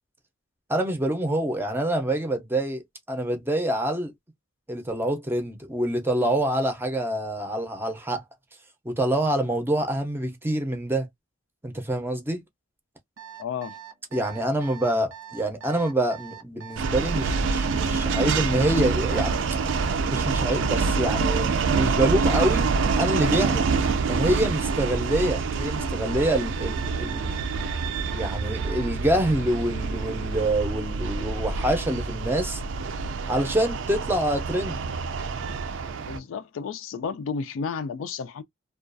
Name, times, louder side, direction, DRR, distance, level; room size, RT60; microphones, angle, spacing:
voice 1, 0.7-4.1 4.7-8.2 8.8-11.1 11.6-12.4 14.1-19.3 20.1-22.7 22.9-23.7 24.0-27.4 28.1-32.6 33.3-34.8, right 1 dB, 10° right, 0.5 m, -26 dB
Alarm, 13.2-29.0, right 9 dB, 90° right, 0.7 m, -43 dB
voice 2, 13.4-13.8 36.0-38.4, left 5 dB, 80° left, 0.4 m, -32 dB
sound 1, 16.8-36.2, right 4 dB, 65° right, 0.4 m, -26 dB
2.3 x 2.3 x 2.5 m
head